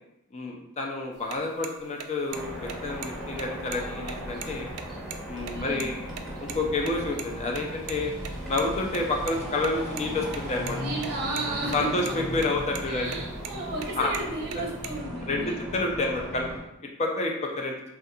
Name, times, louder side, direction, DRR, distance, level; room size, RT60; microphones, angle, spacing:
voice 1, 0.3-4.7 5.3-6.0 6.4-8.1 8.5-10.8 11.7-13.2 14.0-14.1 15.3-15.4 15.7-16.5 17.0-17.8, left 2 dB, 30° left, 1 dB, 0.4 m, -29 dB
sound 1, 1.2-6.2 6.5-6.6 6.9-7.0 7.2-7.3 7.5-7.6 7.9-8.0 8.2-9.3 9.6-10.1 10.3-11.1 11.4-11.8 12.0-12.5 12.7-12.8 13.1-13.5 13.8-15.0, right 8 dB, 75° right, 0.3 m, -38 dB
sound 2, 2.3-16.6, equal, ahead, 0.7 m, -37 dB
voice 2, 5.5-5.8 10.8-11.9 12.9-15.6, right 2 dB, 50° right, -1 dB, 0.7 m, -33 dB
3.5 x 2.3 x 2.7 m, 0.85 s
head